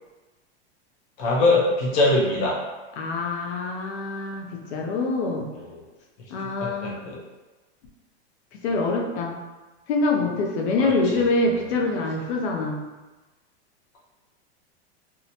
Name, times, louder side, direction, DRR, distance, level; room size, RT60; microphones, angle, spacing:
voice 1, 1.2-2.6 5.5-5.8 6.6-7.2 10.8-11.3, left 2 dB, 25° left, -4 dB, 0.4 m, -23 dB
voice 2, 3.0-5.5 6.3-7.0 8.6-9.4 9.9-12.8, left 3 dB, 75° left, 1 dB, 0.6 m, -25 dB
2.7 x 2.1 x 2.7 m, 1.2 s
supercardioid pair, 165°, 33 cm